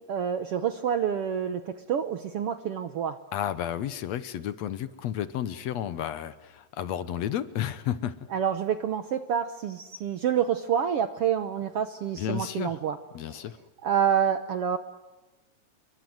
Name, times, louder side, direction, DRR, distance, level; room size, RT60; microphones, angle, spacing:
voice 1, 0.0-3.2 8.3-13.0 13.3-13.4 13.8-14.8, right 8 dB, 70° right, 11 dB, 1.4 m, -28 dB
voice 2, 3.3-8.2 12.2-12.7 13.1-13.6, left 10 dB, 65° left, 14 dB, 1.9 m, -32 dB
29.0 x 23.0 x 7.9 m, 1.1 s
omnidirectional pair, 3.9 m